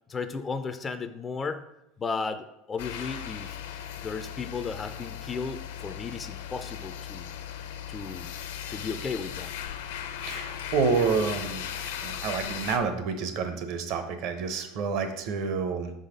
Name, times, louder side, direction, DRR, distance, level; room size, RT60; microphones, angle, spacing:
voice 1, 0.1-1.6 2.0-3.6 4.0-7.3 7.9-8.3 8.7-9.5, left 5 dB, 20° left, 8 dB, 0.3 m, -34 dB
sound 1, 2.8-12.8, left 9 dB, 85° left, 0.6 m, -37 dB
voice 2, 10.2-11.7 12.0-15.9, right 5 dB, 55° right, 7 dB, 0.9 m, -28 dB
6.0 x 4.0 x 5.2 m, 0.84 s
supercardioid pair, 145°, 0 cm